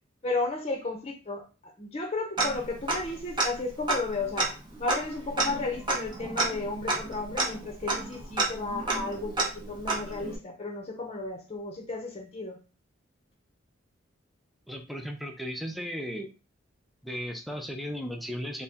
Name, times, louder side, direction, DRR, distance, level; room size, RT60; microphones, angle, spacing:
voice 1, 0.2-4.5 4.8-12.6, left 3 dB, 30° left, 0.8 m, -33 dB
Tick-tock, 2.4-3.1 3.4-3.5 3.8-10.4, right 3 dB, 25° right, 0.9 m, -30 dB
voice 2, 14.7-16.3 17.0-18.6, equal, ahead, 0.5 m, -35 dB
4.1 x 2.2 x 3.5 m
head